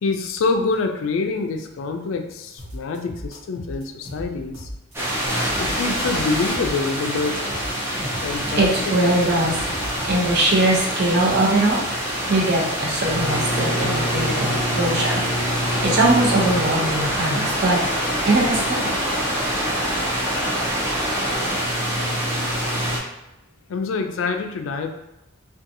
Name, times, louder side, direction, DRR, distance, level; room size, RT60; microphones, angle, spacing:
voice 1, 0.0-4.7 5.6-7.4 8.2-8.7 9.0-9.1 23.7-24.9, left 4 dB, 80° left, 5 dB, 0.3 m, -26 dB
sound 1, 2.6-5.0 5.3-6.9 7.2-10.5, equal, 85° right, 0.9 m, -37 dB
sound 2, 4.9-23.0, equal, 10° right, 0.5 m, -25 dB
voice 2, 8.6-9.6 10.1-11.8 12.3-15.2 15.8-17.8 18.3-19.1, right 1 dB, 55° right, -3 dB, 0.7 m, -21 dB
2.6 x 2.3 x 2.6 m, 0.91 s
head